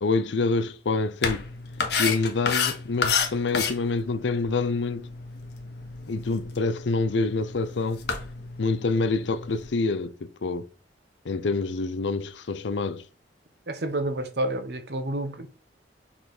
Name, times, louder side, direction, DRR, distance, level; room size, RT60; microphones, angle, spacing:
voice 1, 0.0-1.4 2.0-5.1 6.1-8.0 8.6-10.7 11.2-13.0, left 3 dB, 90° left, 0.6 m, -26 dB
sound 1, 1.2-9.7, left 5 dB, 65° left, 1.1 m, -31 dB
voice 2, 13.7-15.5, right 1 dB, 65° right, 0.9 m, -29 dB
5.0 x 4.3 x 4.4 m
head